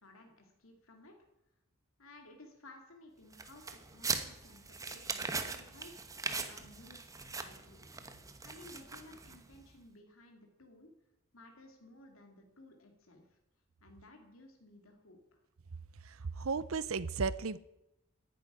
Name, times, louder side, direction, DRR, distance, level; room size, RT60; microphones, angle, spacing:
voice 1, 0.0-1.2 2.0-7.8 8.4-10.9 11.3-13.4 13.8-15.4, left 2 dB, 80° left, 2.4 m, -57 dB
sound 1, 3.3-9.6, right 4 dB, 15° right, 1.1 m, -40 dB
voice 2, 16.0-17.6, right 4 dB, 85° right, 0.7 m, -35 dB
11.0 x 10.0 x 10.0 m
head